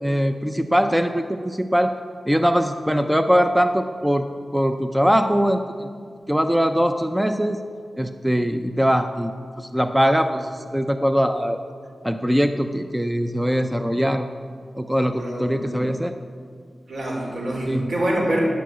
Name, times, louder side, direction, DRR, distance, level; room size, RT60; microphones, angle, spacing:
voice 1, 0.0-1.9 2.3-4.3 4.5-5.9 6.3-7.6 8.0-11.6 12.0-14.3 14.8-16.1 17.7-17.9, equal, 5° right, 7 dB, 0.5 m, -21 dB
voice 2, 15.1-15.8 16.9-18.4, right 1 dB, 70° right, -2 dB, 4.0 m, -25 dB
12.5 x 9.3 x 8.0 m, 2.2 s
wide cardioid pair, 110°, 0 cm